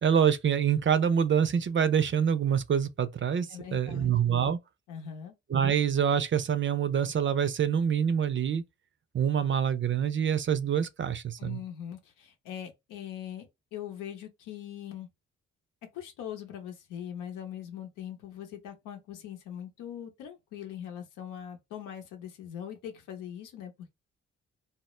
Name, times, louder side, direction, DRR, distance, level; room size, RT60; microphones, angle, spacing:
voice 1, 0.0-4.6 5.5-8.6 9.1-11.6, right 8 dB, 40° right, 0.5 m, -26 dB
voice 2, 3.5-4.1 4.9-5.3 11.4-15.1 15.9-23.7, left 9 dB, 80° left, 0.8 m, -41 dB
2.1 x 2.0 x 3.0 m
supercardioid pair, 50°, 31 cm